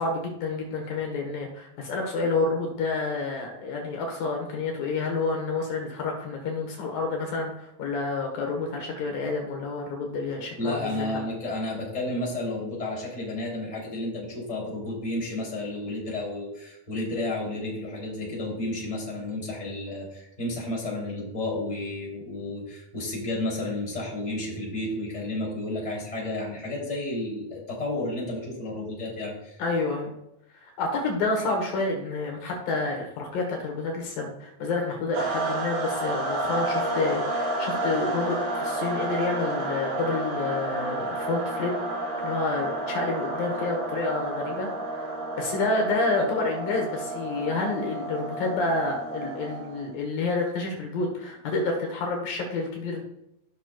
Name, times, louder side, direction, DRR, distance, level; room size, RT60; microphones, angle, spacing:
voice 1, 0.0-11.1 29.6-30.1 30.6-41.8 42.2-53.0, left 3 dB, 70° left, 1 dB, 2.9 m, -29 dB
voice 2, 10.6-29.6, left 2 dB, 10° left, -4 dB, 2.7 m, -32 dB
sound 1, 35.1-49.9, right 2 dB, 85° right, 4.8 m, -31 dB
15.0 x 6.2 x 2.3 m, 0.84 s
omnidirectional pair, 4.3 m